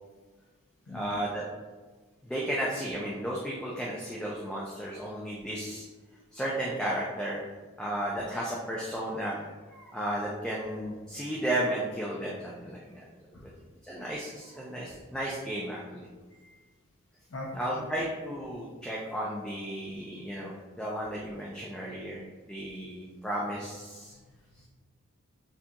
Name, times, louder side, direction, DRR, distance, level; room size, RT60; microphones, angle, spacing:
voice 1, 0.9-1.4 2.2-5.8 6.3-7.4 7.8-9.4 9.7-13.0 13.4-13.5 13.8-16.1 17.5-22.2 22.5-24.1, right 1 dB, 5° left, -5 dB, 0.4 m, -34 dB
voice 2, 16.3-16.7 17.3-17.5 17.8-17.9 24.2-24.7, left 1 dB, 65° left, -5 dB, 0.7 m, -43 dB
6.7 x 2.4 x 2.8 m, 1.3 s
head